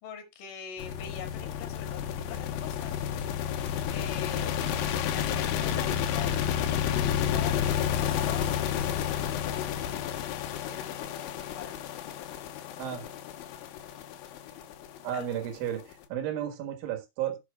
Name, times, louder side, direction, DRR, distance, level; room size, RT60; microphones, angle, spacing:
voice 1, 0.0-9.7 10.6-12.1 15.1-15.4, left 7 dB, 55° left, 3.3 m, -45 dB
sound 1, 0.8-15.9, left 9 dB, 85° left, 3.5 m, -31 dB
voice 2, 15.0-17.4, right 10 dB, 90° right, 4.1 m, -33 dB
17.0 x 7.6 x 2.3 m
omnidirectional pair, 5.3 m